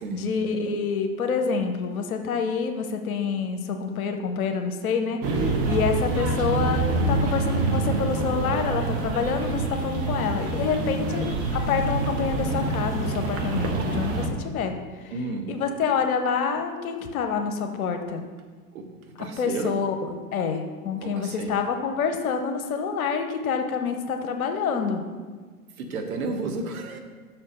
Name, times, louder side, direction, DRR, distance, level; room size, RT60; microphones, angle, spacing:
voice 1, 0.1-11.3 11.5-14.7 15.0-15.1 15.5-18.2 19.2-19.9 20.3-25.0, left 5 dB, 60° left, 6 dB, 0.8 m, -27 dB
sound 1, 5.2-14.3, right 2 dB, 30° right, 1.0 m, -26 dB
voice 2, 10.8-11.3 14.4-14.5 15.1-15.5 18.7-18.8 19.2-19.7 21.0-21.6 25.8-27.0, right 3 dB, 60° right, 5 dB, 1.2 m, -32 dB
5.9 x 4.4 x 6.3 m, 1.5 s
figure-of-eight pair, 100°, 47 cm